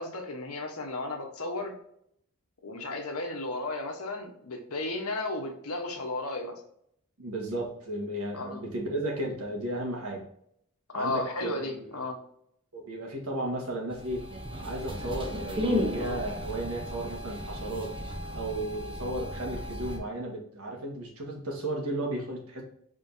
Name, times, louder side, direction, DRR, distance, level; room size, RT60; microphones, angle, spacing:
voice 1, 0.0-1.7 2.6-6.5 8.3-8.6 10.9-12.2, left 2 dB, 90° left, 3 dB, 1.1 m, -34 dB
voice 2, 7.2-10.2 10.9-11.8 12.7-14.2 14.6-17.9 18.3-22.6, right 1 dB, 80° right, 0 dB, 1.5 m, -34 dB
sound 1, 13.9-20.0, left 1 dB, 25° right, 0.7 m, -34 dB
5.1 x 3.7 x 2.7 m, 0.70 s
head